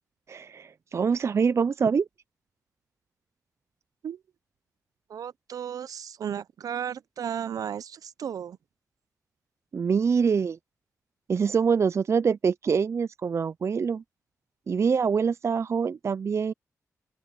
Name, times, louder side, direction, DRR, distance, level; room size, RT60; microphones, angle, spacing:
voice 1, 0.3-2.1 9.7-10.6 11.3-14.0 14.7-16.5, right 6 dB, 50° right, 0.4 m, -25 dB
voice 2, 5.1-8.6, right 8 dB, 75° right, 0.8 m, -34 dB
open air
cardioid pair, 60°, 6 cm